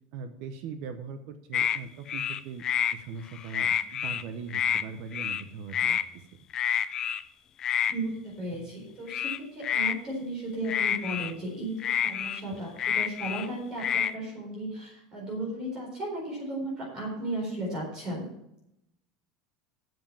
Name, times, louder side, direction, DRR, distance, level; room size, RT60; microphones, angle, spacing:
voice 1, 0.1-2.6 2.9-6.3, right 5 dB, 50° right, 9 dB, 0.7 m, -40 dB
sound 1, 1.5-1.8 2.1-2.9 3.3-4.2 4.5-4.8 5.1-5.4 5.7-6.0 6.5-7.2 7.6-7.9 9.1-10.0 10.7-11.3 11.8-13.5 13.8-14.1, left 9 dB, 25° left, 0.3 m, -28 dB
voice 2, 7.9-18.3, right 1 dB, 25° right, -3 dB, 4.2 m, -35 dB
7.8 x 7.4 x 7.0 m, 0.81 s
cardioid pair, 180°, 3 cm